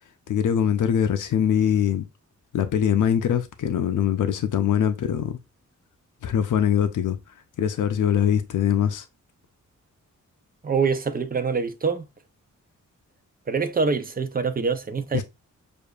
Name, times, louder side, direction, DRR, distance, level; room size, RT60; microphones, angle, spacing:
voice 1, 0.3-2.1 2.5-5.4 6.2-7.2 7.6-9.1 15.1-15.2, left 9 dB, 75° left, 0.5 m, -22 dB
voice 2, 10.6-12.1 13.5-15.2, right 5 dB, 30° right, 0.5 m, -25 dB
6.6 x 2.5 x 2.3 m
wide cardioid pair, 140°, 31 cm